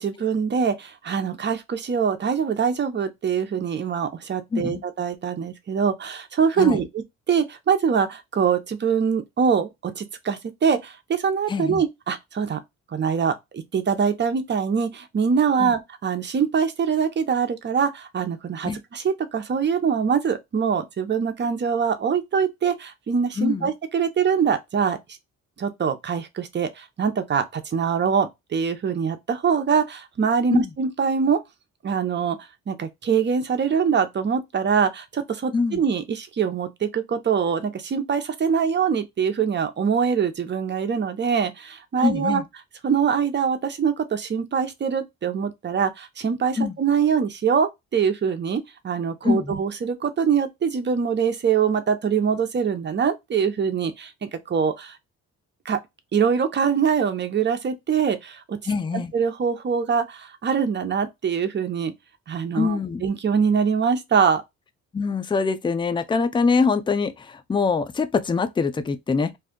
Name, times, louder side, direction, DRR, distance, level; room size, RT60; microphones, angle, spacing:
voice 1, 0.0-12.6 12.9-25.0 25.6-31.4 31.8-42.4 42.8-55.0 55.6-55.8 56.1-58.6 58.9-61.9 62.3-64.4, right 6 dB, 35° right, 0.7 m, -23 dB
voice 2, 11.5-11.8 15.6-15.7 18.6-18.8 23.4-23.7 30.5-30.7 35.5-35.8 42.0-42.4 46.6-46.7 49.2-49.5 58.7-59.1 62.5-63.0 64.9-69.3, left 4 dB, 15° left, 0.4 m, -24 dB
2.6 x 2.3 x 3.6 m
cardioid pair, 90°, 30 cm